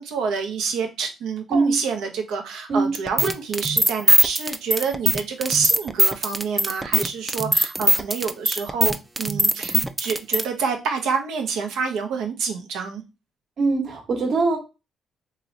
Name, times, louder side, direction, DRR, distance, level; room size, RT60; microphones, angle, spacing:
voice 1, 0.0-13.0, right 5 dB, 85° right, 0.7 m, -27 dB
sound 1, 2.9-10.4, right 1 dB, 15° right, 0.3 m, -20 dB
voice 2, 13.6-14.6, right 3 dB, 60° right, 1.2 m, -21 dB
3.0 x 2.9 x 2.6 m
cardioid pair, 90°, 0 cm